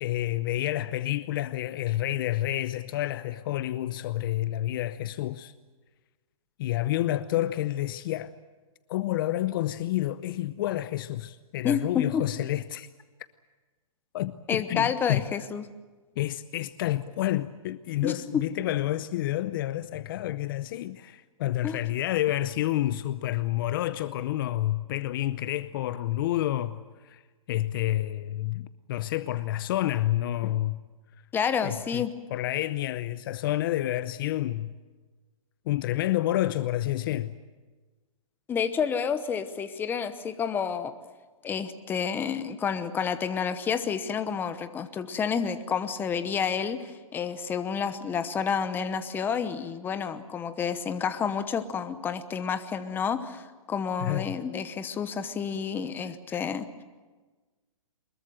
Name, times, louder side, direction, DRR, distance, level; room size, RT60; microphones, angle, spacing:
voice 1, 0.0-5.5 6.6-8.3 8.9-12.9 14.1-15.2 16.2-27.2 27.5-30.8 31.6-32.1 32.3-34.7 35.7-37.3 54.0-54.4 56.3-56.4, left 14 dB, 40° left, 0.7 m, -29 dB
voice 2, 11.6-12.2 14.5-15.6 18.0-18.4 21.6-21.8 31.3-32.1 38.5-40.9 41.4-56.7, left 7 dB, 10° left, 0.9 m, -29 dB
24.0 x 21.5 x 7.8 m
hypercardioid pair, 150°, 18 cm